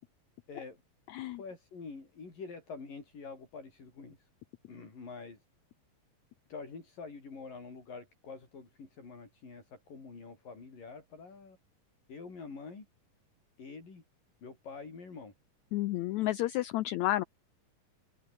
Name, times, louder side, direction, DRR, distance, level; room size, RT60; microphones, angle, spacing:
voice 1, 0.5-0.8 1.3-4.3 4.7-5.4 6.5-11.6 12.1-12.9 13.6-14.0 14.4-15.3, left 4 dB, 70° left, 8.2 m, -46 dB
voice 2, 15.7-17.2, left 15 dB, 90° left, 1.6 m, -31 dB
omnidirectional pair, 4.0 m